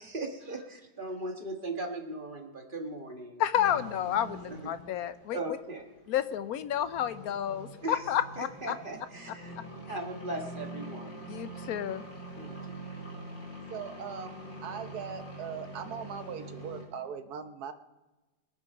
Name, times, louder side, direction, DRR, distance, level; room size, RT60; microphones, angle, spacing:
voice 1, 0.0-3.4 4.5-4.6 5.3-5.8 7.8-8.0 8.4-9.5 9.9-11.2 12.4-12.7, right 2 dB, 30° right, 3 dB, 1.6 m, -38 dB
voice 2, 3.4-5.4 6.1-8.7 9.9-10.0 11.3-12.0, left 10 dB, 65° left, 13 dB, 1.1 m, -30 dB
sound 1, 3.5-16.8, right 1 dB, 85° left, 4.7 m, -45 dB
voice 3, 13.7-14.3 14.6-17.7, right 7 dB, 60° right, 9 dB, 1.4 m, -39 dB
21.5 x 8.4 x 5.4 m, 1.1 s
omnidirectional pair, 1.9 m